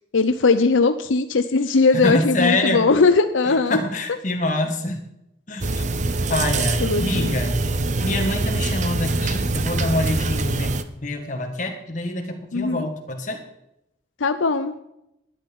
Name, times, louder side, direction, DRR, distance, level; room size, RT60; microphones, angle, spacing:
voice 1, 0.1-3.8 6.8-7.4 12.5-12.9 14.2-14.8, left 4 dB, 90° left, 9 dB, 0.7 m, -19 dB
voice 2, 1.9-2.9 3.5-5.0 5.5-5.8 6.3-7.6 8.0-13.4, left 2 dB, 40° left, 3 dB, 1.8 m, -26 dB
sound 1, 5.6-10.8, right 3 dB, 40° right, 0.6 m, -24 dB
11.5 x 10.5 x 5.4 m, 0.84 s
head